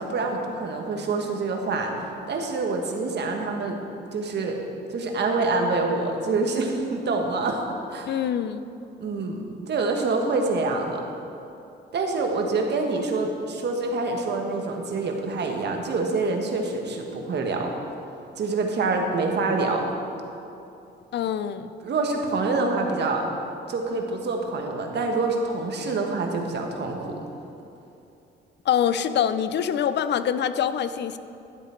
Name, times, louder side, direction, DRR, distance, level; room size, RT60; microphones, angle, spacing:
voice 1, 0.0-1.9 2.3-3.8 4.1-4.6 4.9-7.6 7.9-8.1 9.0-11.0 11.9-17.7 18.3-20.0 21.8-23.3 23.7-27.2, right 3 dB, 60° right, 2 dB, 1.5 m, -26 dB
voice 2, 8.1-8.6 21.1-21.7 28.7-31.2, left 9 dB, 60° left, 12 dB, 0.5 m, -25 dB
12.5 x 7.9 x 4.5 m, 2.8 s
cardioid pair, 90°, 20 cm